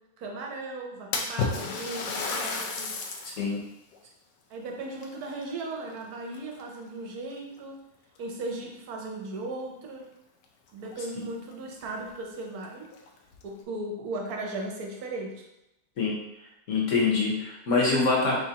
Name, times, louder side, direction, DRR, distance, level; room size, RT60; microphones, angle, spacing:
voice 1, 0.2-2.9 4.0-4.1 4.5-7.8 8.2-10.1 10.7-12.9 13.4-15.4, right 2 dB, 70° right, 1 dB, 1.2 m, -37 dB
Splash splatter, 1.1-3.4 3.9-4.0 4.9-6.0 6.3-6.8 7.6-7.7 8.2-8.3 10.4-10.5 10.8-10.9 11.5-11.6 12.0-12.1 12.8-13.4, left 4 dB, 80° left, 1.2 m, -32 dB
voice 2, 3.2-3.6 16.0-16.1 16.7-18.4, left 4 dB, 55° left, -2 dB, 1.1 m, -25 dB
4.1 x 3.6 x 2.8 m, 0.88 s
omnidirectional pair, 1.8 m